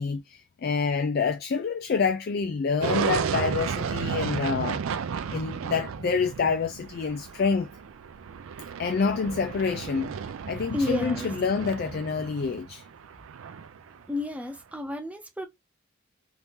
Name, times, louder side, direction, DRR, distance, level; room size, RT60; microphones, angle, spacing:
voice 1, 0.0-4.8 5.3-7.7 8.8-10.2 10.5-12.8, left 5 dB, 50° left, 0.3 m, -27 dB
sound 1, 2.8-14.0, right 6 dB, 80° right, 0.4 m, -33 dB
voice 2, 10.7-11.3 14.1-15.5, left 1 dB, 5° right, 0.6 m, -31 dB
3.0 x 2.7 x 3.5 m
head